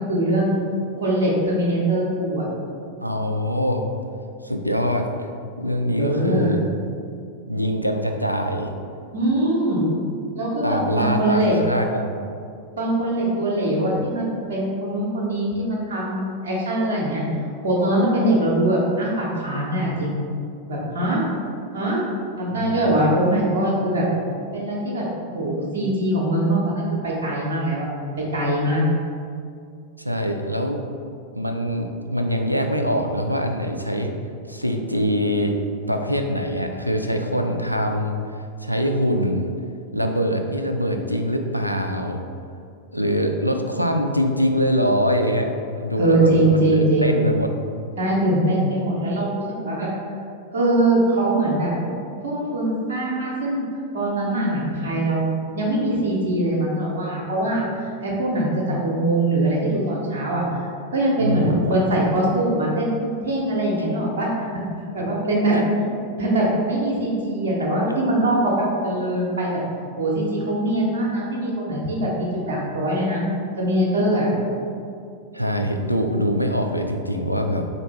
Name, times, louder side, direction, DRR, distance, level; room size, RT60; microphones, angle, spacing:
voice 1, 0.1-0.6 0.9-2.5 6.0-6.6 9.1-9.8 10.3-11.5 12.8-17.2 17.6-20.2 20.7-21.3 21.7-22.1 22.4-24.1 24.5-25.1 25.3-27.9 28.3-28.8 46.0-47.1 48.0-49.9 50.5-51.7 52.2-53.6 53.9-60.6 60.9-62.9 63.2-64.3 64.9-65.6 66.2-69.6 70.0-73.2 73.6-74.3, right 1 dB, 60° right, -3 dB, 0.9 m, -22 dB
voice 2, 3.0-3.8 4.4-5.1 5.6-6.6 7.5-8.7 10.6-12.2 22.5-22.8 30.0-30.8 31.3-34.2 34.5-35.6 35.9-38.2 38.6-39.5 39.9-42.2 42.9-47.6 61.2-61.5 65.5-65.7 75.3-77.7, equal, 90° right, 4 dB, 0.3 m, -23 dB
4.2 x 2.8 x 4.2 m, 2.4 s
figure-of-eight pair, 90°, 0 cm